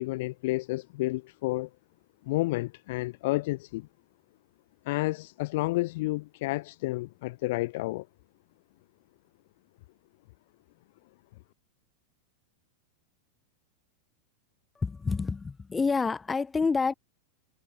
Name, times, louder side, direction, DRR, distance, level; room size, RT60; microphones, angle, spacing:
voice 1, 0.0-1.7 2.3-3.9 4.8-8.1, left 20 dB, 50° left, 1.0 m, -30 dB
voice 2, 14.8-16.9, left 4 dB, 15° left, 2.7 m, -28 dB
figure-of-eight pair, 90°, 0 cm